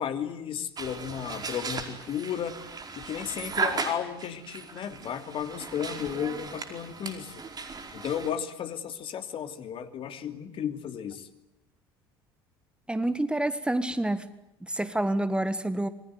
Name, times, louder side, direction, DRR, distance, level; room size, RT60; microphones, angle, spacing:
voice 1, 0.0-2.6 3.0-7.4 7.9-11.3, left 8 dB, 45° left, 9 dB, 2.8 m, -34 dB
sound 1, 0.8-8.3, right 4 dB, 30° right, 4.8 m, -36 dB
voice 2, 12.9-14.3 14.6-15.9, right 1 dB, 10° right, 13 dB, 1.7 m, -28 dB
27.5 x 22.0 x 9.5 m, 0.87 s
figure-of-eight pair, 65°, 13 cm